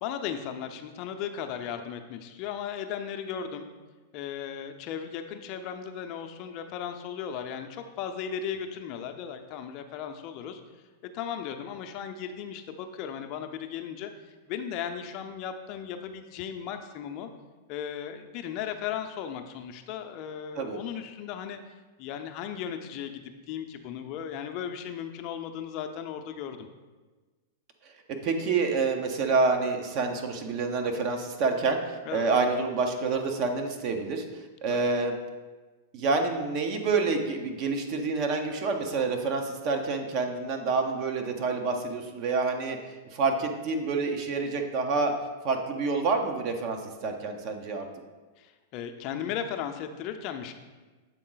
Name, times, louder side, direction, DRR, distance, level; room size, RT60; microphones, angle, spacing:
voice 1, 0.0-3.7 4.1-10.6 11.1-14.1 14.5-17.3 17.7-21.6 22.0-26.7 32.1-32.3 34.7-34.9 48.4-50.5, left 8 dB, 45° left, 7 dB, 0.6 m, -36 dB
voice 2, 28.2-35.2 35.9-42.8 43.1-45.1 45.4-47.9, right 4 dB, 45° right, 4 dB, 0.7 m, -28 dB
7.3 x 3.8 x 3.9 m, 1.3 s
hypercardioid pair, 110°, 0 cm